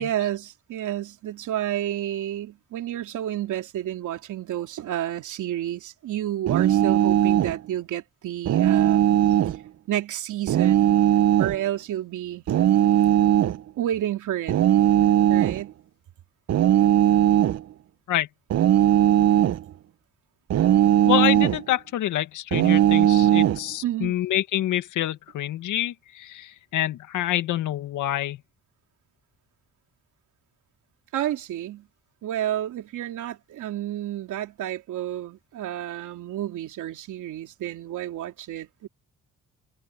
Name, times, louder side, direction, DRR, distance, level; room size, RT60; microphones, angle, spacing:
voice 1, 0.0-9.0 9.9-11.0 11.4-12.4 13.8-14.6 15.3-15.7 23.8-24.2 31.1-31.9 32.2-38.9, right 12 dB, 80° right, 3.4 m, -30 dB
sound 1, 6.5-7.6 8.4-9.6 10.5-11.6 12.5-13.6 14.5-15.6 16.5-17.6 18.5-19.6 20.5-21.6 22.5-23.6, right 11 dB, 60° right, 0.8 m, -19 dB
voice 2, 21.1-28.4, left 13 dB, 85° left, 2.1 m, -27 dB
cardioid pair, 90°, 30 cm